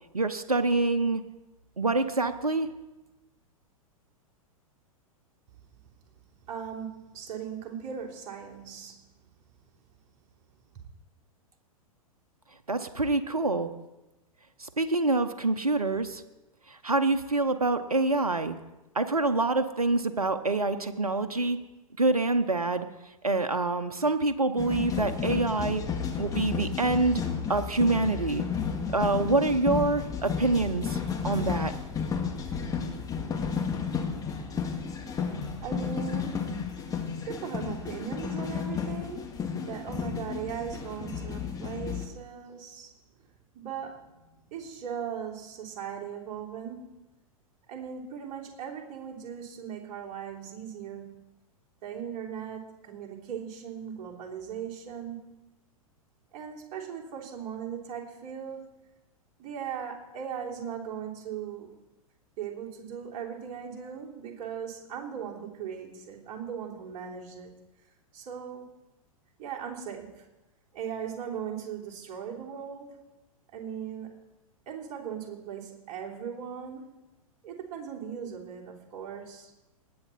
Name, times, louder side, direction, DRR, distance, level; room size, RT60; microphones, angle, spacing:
voice 1, 0.1-1.2 1.8-2.7 12.7-13.7 14.6-16.2 16.7-18.6 18.9-21.6 22.0-22.9 23.2-25.8 26.2-27.2 27.5-28.4 28.9-31.7, right 2 dB, 90° right, 9 dB, 0.8 m, -26 dB
voice 2, 6.5-9.1 10.7-10.9 35.6-36.5 36.8-39.3 39.6-42.9 43.5-47.0 47.7-51.3 51.8-55.5 56.3-58.8 59.4-61.7 62.4-67.5 68.1-68.7 69.4-70.3 70.7-73.1 73.5-74.2 74.7-76.9 77.4-79.5, right 8 dB, 40° right, -2 dB, 3.3 m, -38 dB
sound 1, 24.6-42.1, left 6 dB, 20° left, 1.8 m, -32 dB
19.5 x 8.6 x 4.2 m, 1.0 s
figure-of-eight pair, 100°, 18 cm